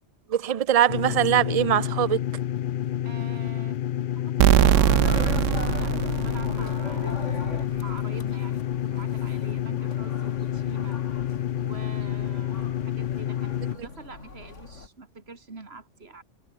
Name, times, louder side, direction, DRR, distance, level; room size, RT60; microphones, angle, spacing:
voice 1, 0.3-2.2 13.8-13.9, right 10 dB, 40° right, 0.6 m, -22 dB
sound 1, 0.9-13.8, left 11 dB, 60° left, 0.6 m, -29 dB
voice 2, 3.0-3.8 4.1-11.0 11.6-12.7 13.0-16.2, right 3 dB, 55° right, 2.8 m, -45 dB
sound 2, 4.4-7.1, right 13 dB, 90° right, 1.0 m, -21 dB
sound 3, 4.5-14.9, left 4 dB, 80° left, 3.0 m, -38 dB
omnidirectional pair, 1.2 m